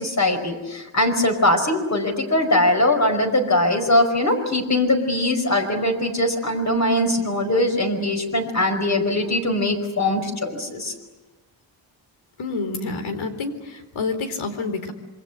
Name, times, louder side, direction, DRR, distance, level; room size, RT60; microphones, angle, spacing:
voice 1, 0.0-10.9, left 1 dB, 35° left, 4 dB, 5.1 m, -21 dB
voice 2, 12.4-14.9, left 3 dB, 75° left, 8 dB, 4.2 m, -28 dB
27.0 x 23.5 x 8.1 m, 1.2 s
cardioid pair, 120°, 47 cm